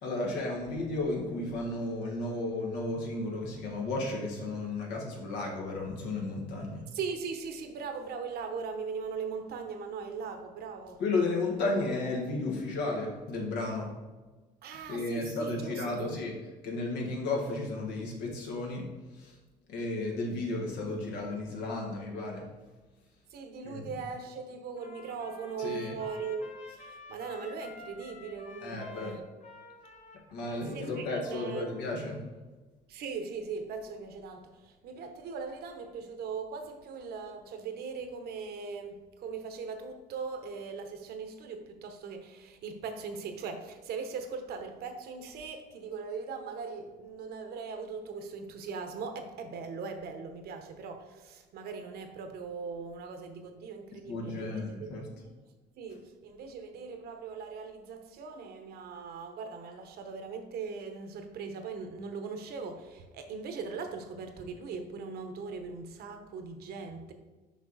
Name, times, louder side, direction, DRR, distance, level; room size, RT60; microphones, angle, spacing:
voice 1, 0.0-6.8 11.0-13.9 14.9-16.3 16.6-18.9 19.1-19.3 19.7-22.4 23.6-23.9 25.6-26.0 28.6-29.1 30.3-32.2 54.1-55.0, left 2 dB, 80° left, 0 dB, 1.7 m, -33 dB
voice 2, 6.9-11.0 14.6-16.1 23.3-29.2 30.5-31.7 32.9-54.9 55.2-55.4 55.8-67.1, right 5 dB, 70° right, 6 dB, 1.0 m, -40 dB
Trumpet, 24.8-31.8, left 3 dB, 40° left, 1.1 m, -51 dB
6.2 x 5.5 x 4.1 m, 1.3 s
cardioid pair, 110°, 17 cm